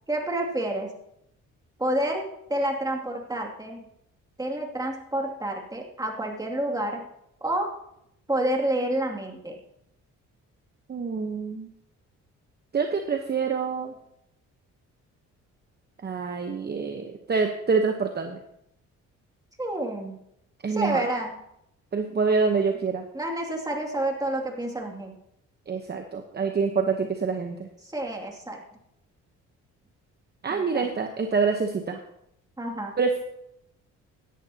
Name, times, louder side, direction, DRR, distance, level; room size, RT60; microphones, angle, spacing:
voice 1, 0.1-0.9 1.8-3.8 4.4-7.0 7.4-7.7 8.3-9.6 19.6-20.2 20.7-21.3 23.1-25.1 27.9-28.6 30.5-30.9 32.6-32.9, right 1 dB, 10° right, 0 dB, 2.5 m, -29 dB
voice 2, 10.9-11.7 12.7-13.9 16.0-18.4 20.6-21.1 21.9-23.0 25.7-27.7 30.4-32.0 33.0-33.2, right 5 dB, 35° right, 5 dB, 1.0 m, -26 dB
16.0 x 11.0 x 2.9 m, 0.78 s
cardioid pair, 90°, 30 cm